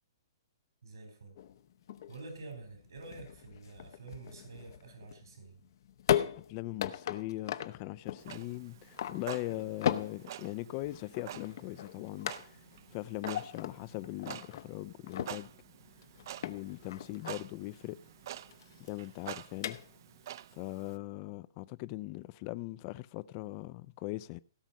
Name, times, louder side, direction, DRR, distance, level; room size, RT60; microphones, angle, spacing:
voice 1, 0.8-1.4 2.1-5.6, right 3 dB, 80° right, 3.7 m, -48 dB
sound 1, 1.4-20.2, left 10 dB, 60° left, 0.9 m, -39 dB
voice 2, 6.5-12.6 12.9-15.5 16.4-18.0 18.8-19.8 20.5-24.4, left 18 dB, 35° left, 0.4 m, -40 dB
Clock, 8.2-21.0, right 11 dB, 55° right, 0.5 m, -48 dB
16.5 x 6.2 x 5.4 m
hypercardioid pair, 135°, 2 cm